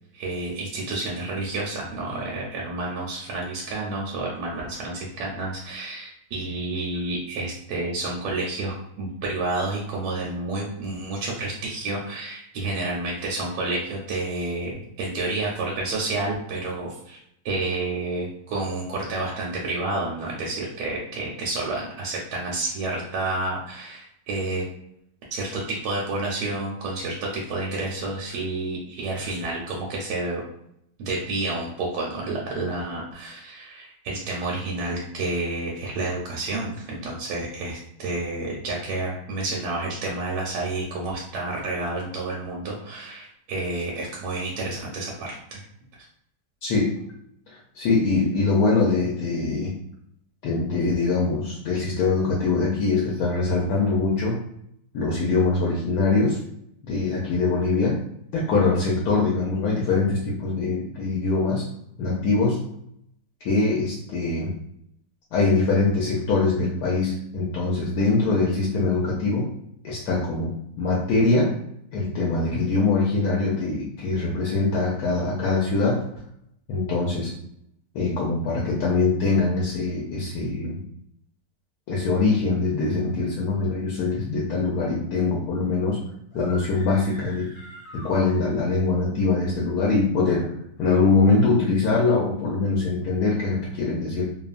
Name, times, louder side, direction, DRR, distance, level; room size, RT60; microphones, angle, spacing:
voice 1, 0.1-17.2 17.4-24.6 25.3-30.4 31.0-45.6, right 2 dB, 75° right, -3 dB, 1.2 m, -30 dB
voice 2, 46.6-47.0 47.5-49.7 50.4-54.4 54.9-56.4 56.8-58.0 58.3-61.6 62.0-62.6 63.4-64.5 65.3-69.5 69.8-71.5 71.9-76.0 76.7-77.3 77.9-80.8 81.9-86.0 86.3-87.5 87.9-90.5 90.8-94.2, left 3 dB, 70° left, -3 dB, 1.0 m, -23 dB
sound 1, 86.3-88.9, equal, 40° left, 1.2 m, -44 dB
2.9 x 2.2 x 2.4 m, 0.75 s
omnidirectional pair, 1.9 m